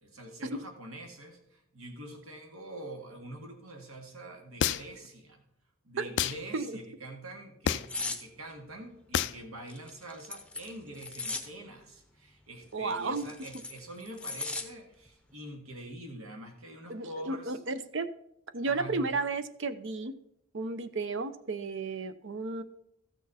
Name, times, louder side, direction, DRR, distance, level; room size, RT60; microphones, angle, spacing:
voice 1, 0.0-5.4 5.8-17.6 18.6-19.1, right 1 dB, 80° right, 3 dB, 2.0 m, -45 dB
sound 1, 4.6-5.1 6.2-6.4 7.7-8.0 9.1-9.4, left 9 dB, 55° left, 0.3 m, -28 dB
sound 2, 7.9-8.2 9.7-11.5 12.9-14.7 15.1-15.3, left 3 dB, 5° left, 0.7 m, -37 dB
voice 2, 12.7-13.3 16.9-18.1 18.5-20.1 20.5-22.6, right 3 dB, 55° right, 12 dB, 0.7 m, -33 dB
14.0 x 6.4 x 4.1 m, 0.79 s
head